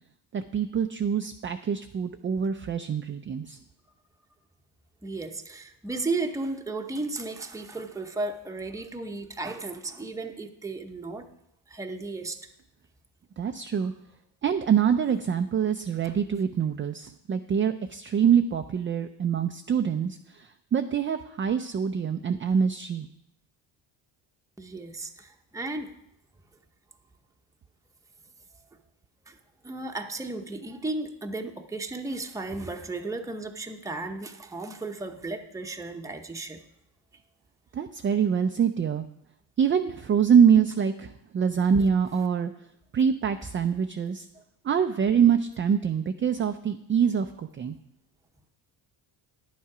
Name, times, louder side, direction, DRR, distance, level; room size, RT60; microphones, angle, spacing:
voice 1, 0.3-3.6 13.4-13.9 14.4-23.1 37.7-39.0 39.6-42.5 42.9-44.3 44.6-47.8, right 7 dB, 30° right, 7 dB, 0.4 m, -25 dB
voice 2, 5.0-11.3 11.7-12.5 16.0-16.1 24.6-25.9 29.3-29.4 29.6-36.6 44.3-44.4, right 3 dB, 5° right, 4 dB, 0.8 m, -34 dB
10.0 x 7.3 x 4.8 m, 0.79 s
cardioid pair, 90°, 47 cm